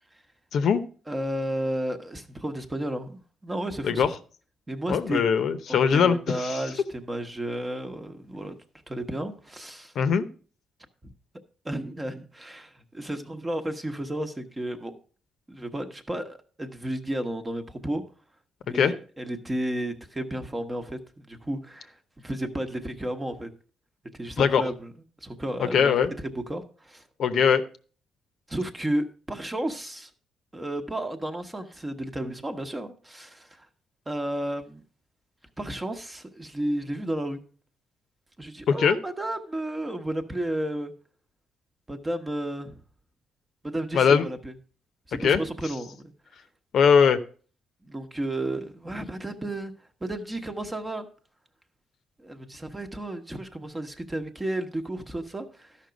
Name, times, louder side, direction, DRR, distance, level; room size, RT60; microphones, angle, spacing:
voice 1, 1.1-4.1 4.7-5.2 5.7-8.6 8.9-9.9 11.6-15.0 15.5-18.0 18.6-21.0 21.3-23.5 24.2-24.9 25.2-26.0 26.2-27.0 28.5-30.1 30.5-33.7 34.1-34.8 35.6-37.4 38.4-40.9 41.9-42.7 43.6-44.5 45.1-46.1 47.9-49.7 50.0-51.1 52.2-55.8, right 1 dB, 15° right, 7 dB, 1.0 m, -32 dB
voice 2, 4.9-6.6 10.0-10.3 18.7-18.9 24.4-24.6 25.7-26.1 27.2-27.6 38.7-39.0 43.9-44.3 45.2-45.4 46.7-47.2, left 6 dB, 60° left, 10 dB, 0.8 m, -21 dB
12.5 x 5.7 x 5.1 m, 0.41 s
cardioid pair, 140°, 0 cm